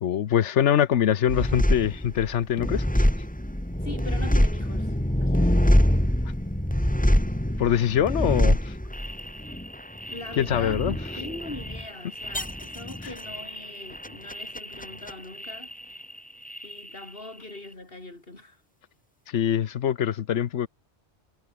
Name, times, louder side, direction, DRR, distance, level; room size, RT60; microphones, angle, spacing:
voice 1, 0.0-2.8 7.6-8.6 10.4-11.0 19.3-20.7, left 9 dB, 85° left, 1.1 m, -23 dB
sound 1, 1.3-16.2 16.4-17.3, equal, 5° left, 2.8 m, -25 dB
voice 2, 3.8-4.9 5.2-5.6 10.1-15.7 16.6-18.6, left 2 dB, 55° left, 4.6 m, -41 dB
omnidirectional pair, 1.2 m